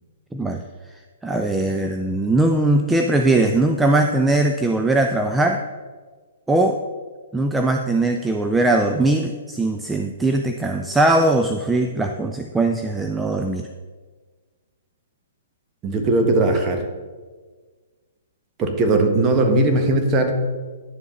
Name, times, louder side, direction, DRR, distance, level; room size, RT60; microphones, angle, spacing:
voice 1, 0.3-0.6 1.2-5.6 6.5-6.8 7.3-13.7, right 2 dB, 5° right, 4 dB, 0.5 m, -20 dB
voice 2, 15.8-16.9 18.6-20.3, right 2 dB, 25° right, 4 dB, 1.4 m, -18 dB
10.5 x 7.4 x 3.9 m, 1.4 s
hypercardioid pair, 125°, 0 cm